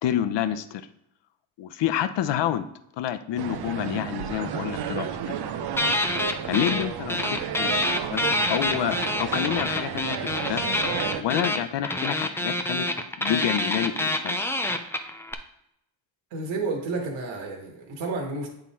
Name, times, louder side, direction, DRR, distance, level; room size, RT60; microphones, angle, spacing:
voice 1, 0.0-0.9 1.6-2.7 3.0-5.4 6.5-10.6 11.2-12.9 13.2-14.4, left 10 dB, 60° left, 11 dB, 0.7 m, -28 dB
sound 1, 3.4-11.2, right 8 dB, 55° right, 0.7 m, -33 dB
sound 2, 5.7-6.8 7.1-15.3, left 1 dB, 5° left, 0.5 m, -27 dB
voice 2, 16.3-18.5, right 3 dB, 70° right, 0 dB, 1.7 m, -31 dB
8.5 x 3.8 x 4.3 m, 0.80 s
cardioid pair, 100°, 48 cm